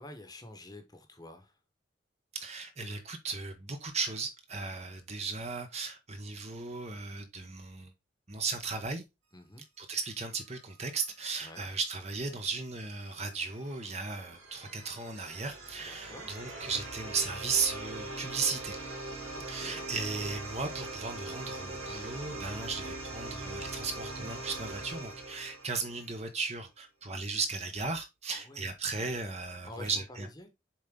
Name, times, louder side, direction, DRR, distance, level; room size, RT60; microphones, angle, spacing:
voice 1, 0.0-1.5 9.3-9.6 11.4-11.6 15.8-16.3 19.3-19.8 28.3-28.7 29.6-30.5, left 2 dB, 20° left, 1.2 m, -48 dB
voice 2, 2.3-7.9 8.3-9.0 9.8-18.8 19.5-30.3, right 4 dB, 30° right, 0.9 m, -36 dB
sound 1, 12.4-26.2, right 2 dB, 85° right, 3.3 m, -42 dB
7.2 x 4.1 x 3.7 m
head